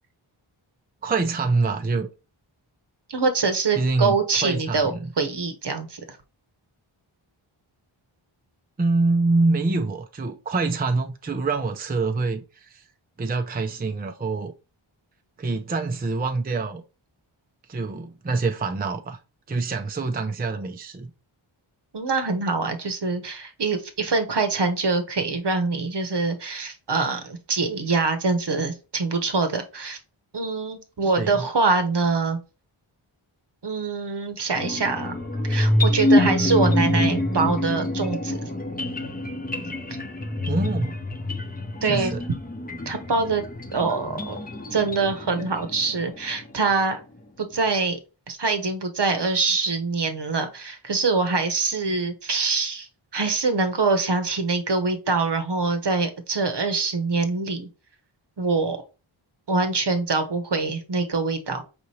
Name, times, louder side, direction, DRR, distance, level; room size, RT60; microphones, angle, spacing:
voice 1, 1.0-2.1 3.8-5.1 8.8-12.8 13.2-14.5 15.4-16.8 17.7-19.2 19.5-21.1 31.2-31.5 40.4-41.0 41.8-42.2, right 3 dB, 20° right, 0.5 m, -25 dB
voice 2, 3.1-6.2 21.9-30.0 30.3-32.4 33.6-35.2 35.5-38.5 41.8-42.1 42.9-43.4 43.7-44.4 44.7-47.0 47.4-48.0 48.3-52.9 53.1-57.7 58.4-58.8 59.5-61.6, right 4 dB, 55° right, 0.9 m, -24 dB
sound 1, 34.6-46.7, left 1 dB, 15° left, 0.8 m, -26 dB
4.9 x 2.8 x 3.2 m
cardioid pair, 45°, 50 cm